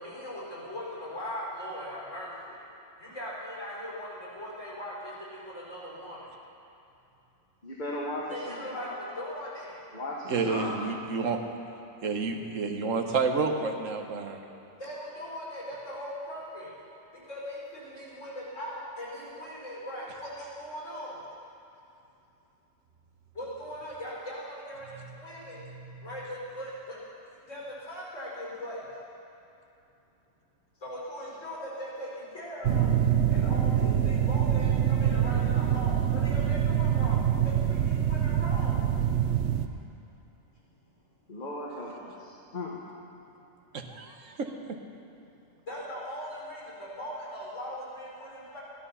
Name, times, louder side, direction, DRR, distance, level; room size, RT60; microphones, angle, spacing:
voice 1, 0.0-2.6 3.0-6.2 8.3-9.8 10.4-10.8 14.8-16.7 17.3-21.2 23.3-25.6 26.0-27.0 27.3-28.8 30.8-32.9 33.3-38.9 45.7-48.6, equal, 75° left, -6 dB, 4.8 m, -39 dB
voice 2, 7.6-8.9 9.9-10.7 41.3-42.8, left 1 dB, 40° left, -4 dB, 1.5 m, -37 dB
voice 3, 10.3-11.4 12.0-14.4 43.7-44.8, right 4 dB, 85° right, 4 dB, 1.4 m, -30 dB
sound 1, 32.6-39.7, right 9 dB, 65° right, 0.9 m, -25 dB
14.5 x 12.0 x 5.6 m, 2.8 s
omnidirectional pair, 1.3 m